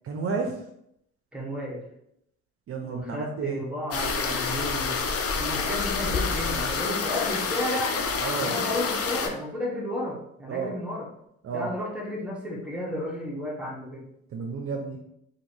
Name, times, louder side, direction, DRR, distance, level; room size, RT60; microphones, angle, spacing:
voice 1, 0.0-0.6 2.7-3.6 8.2-8.6 10.5-10.7 11.4-11.7 14.3-15.0, right 5 dB, 50° right, 2 dB, 0.6 m, -31 dB
voice 2, 1.3-1.8 2.8-5.0 5.3-8.0 8.4-11.1 11.5-14.1, left 1 dB, 5° right, -2 dB, 1.0 m, -32 dB
sound 1, 3.9-9.3, left 5 dB, 50° left, 0.6 m, -28 dB
2.8 x 2.8 x 4.3 m, 0.76 s
cardioid pair, 90°, 30 cm